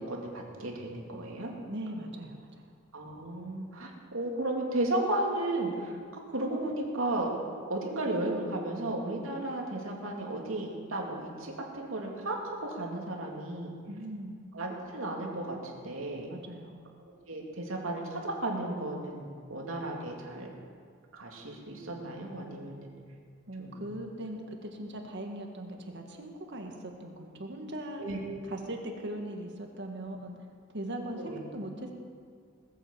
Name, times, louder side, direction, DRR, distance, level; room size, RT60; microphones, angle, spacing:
voice 1, 0.0-1.5 2.9-6.0 6.3-7.3 7.7-13.8 14.5-16.3 17.3-20.5 21.1-22.9 23.6-23.8 28.0-28.2 31.1-31.4, right 1 dB, 75° right, 0 dB, 2.8 m, -34 dB
voice 2, 1.7-2.6 13.9-14.4 16.3-16.8 23.5-28.0 28.5-30.3 30.7-31.9, right 1 dB, 55° right, 2 dB, 1.8 m, -40 dB
20.0 x 8.4 x 7.5 m, 2.2 s
head